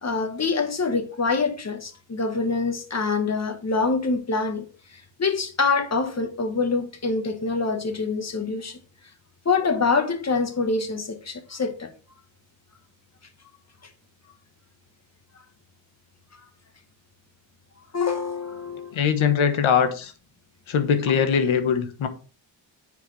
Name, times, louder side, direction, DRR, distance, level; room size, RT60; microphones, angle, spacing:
voice 1, 0.0-8.8 9.5-11.9 17.9-19.0, left 4 dB, 35° left, 1.6 m, -25 dB
voice 2, 18.9-20.1 20.7-22.1, left 7 dB, 80° left, 1.5 m, -21 dB
9.3 x 6.8 x 3.5 m
cardioid pair, 95°, 47 cm